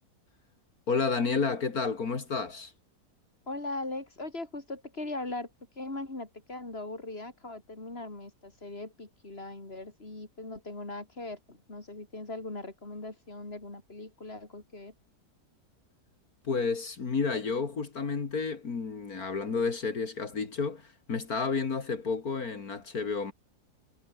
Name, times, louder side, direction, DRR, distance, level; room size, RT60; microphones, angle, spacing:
voice 1, 0.9-2.7 16.4-23.3, left 4 dB, 60° left, 2.7 m, -31 dB
voice 2, 3.5-5.5 5.8-14.9 20.4-20.5, left 2 dB, 35° left, 4.5 m, -40 dB
omnidirectional pair, 1.8 m